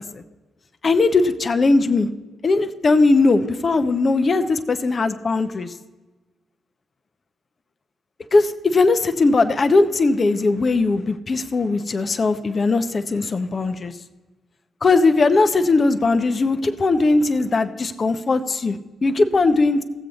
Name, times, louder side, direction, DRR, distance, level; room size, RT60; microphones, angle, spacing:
voice 1, 0.8-2.1 2.4-5.7 8.3-13.9 14.8-19.8, left 3 dB, 45° left, 9 dB, 0.8 m, -19 dB
15.5 x 7.7 x 4.1 m, 1.2 s
hypercardioid pair, 45°, 0 cm